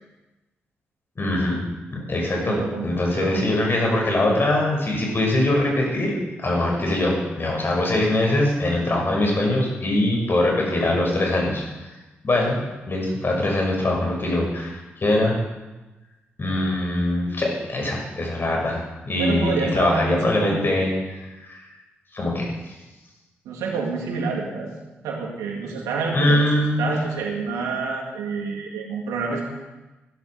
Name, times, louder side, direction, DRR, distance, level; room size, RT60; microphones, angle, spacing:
voice 1, 1.2-1.6 1.9-11.6 12.2-12.6 12.9-15.4 16.4-18.8 19.0-21.6 22.1-22.5 26.1-26.9, left 1 dB, 45° left, -1 dB, 6.4 m, -22 dB
voice 2, 2.3-3.5 19.2-20.7 23.4-24.7 25.0-26.5 26.8-29.5, right 4 dB, 85° right, 0 dB, 2.5 m, -28 dB
16.0 x 12.0 x 4.9 m, 1.1 s
hypercardioid pair, 40°, 5 cm